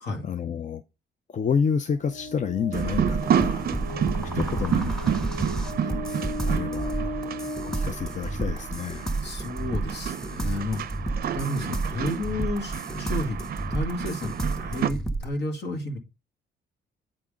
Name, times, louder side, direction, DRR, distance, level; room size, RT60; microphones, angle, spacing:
voice 1, 0.2-0.8 1.3-3.7 4.3-7.1 7.6-9.1, left 6 dB, 40° left, 0.5 m, -30 dB
sound 1, 1.9-8.8, left 1 dB, 85° left, 2.2 m, -37 dB
sound 2, 2.7-15.3, right 2 dB, 5° left, 1.2 m, -31 dB
sound 3, 2.7-14.9, right 9 dB, 50° right, 0.5 m, -30 dB
voice 2, 4.1-5.2 9.2-11.0 11.3-16.0, left 1 dB, 60° left, 2.1 m, -32 dB
8.6 x 3.5 x 5.0 m
cardioid pair, 90°, 20 cm